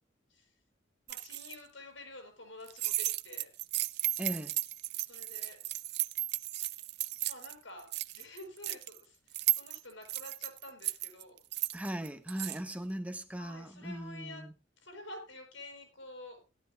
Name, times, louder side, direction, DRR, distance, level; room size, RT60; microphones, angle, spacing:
voice 1, 1.1-3.5 5.1-5.6 7.3-11.4 13.4-14.5 14.8-16.4, left 2 dB, 90° left, 7.1 m, -49 dB
sound 1, 1.1-1.5 2.7-7.5 7.8-9.0 9.3-12.6, right 16 dB, 60° right, 0.7 m, -35 dB
voice 2, 4.2-4.5 11.7-14.5, right 1 dB, 10° right, 1.2 m, -38 dB
17.5 x 12.0 x 2.2 m
head